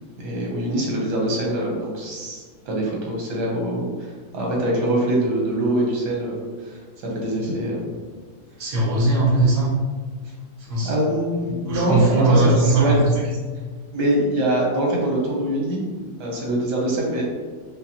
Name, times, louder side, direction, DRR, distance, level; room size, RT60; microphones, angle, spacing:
voice 1, 0.2-6.8 7.1-7.8 9.1-9.2 10.8-12.9 13.9-15.8 16.2-17.2, right 1 dB, 85° right, -2 dB, 1.6 m, -24 dB
voice 2, 8.6-9.7 10.6-10.9 11.6-13.3, right 2 dB, 60° right, -7 dB, 1.5 m, -19 dB
5.2 x 2.2 x 2.8 m, 1.5 s
omnidirectional pair, 1.8 m